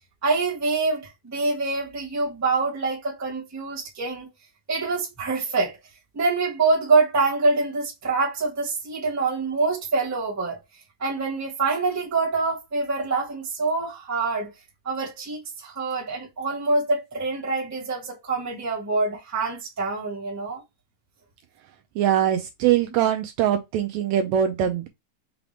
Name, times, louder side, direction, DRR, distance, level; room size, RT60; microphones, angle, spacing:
voice 1, 0.2-4.3 4.7-5.8 6.1-10.6 11.0-14.5 14.8-20.6, right 3 dB, 10° right, 1.0 m, -25 dB
voice 2, 21.9-24.9, right 10 dB, 80° right, 1.7 m, -22 dB
5.8 x 2.5 x 3.4 m
omnidirectional pair, 3.4 m